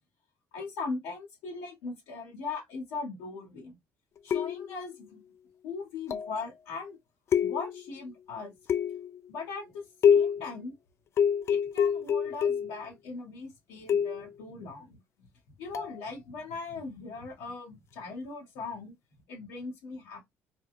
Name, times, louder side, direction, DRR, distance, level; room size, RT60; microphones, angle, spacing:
voice 1, 0.5-3.8 4.2-5.2 5.6-7.0 7.4-8.5 9.3-10.7 11.5-18.9 19.3-20.3, left 4 dB, 85° left, 1.6 m, -39 dB
sound 1, 4.3-4.9 6.1-6.5 7.3-7.9 8.7-9.2 10.0-10.5 11.2-12.8 13.9-14.3 15.7-16.0, left 8 dB, 50° left, 0.4 m, -26 dB
4.0 x 2.2 x 2.5 m
supercardioid pair, 80°, 6 cm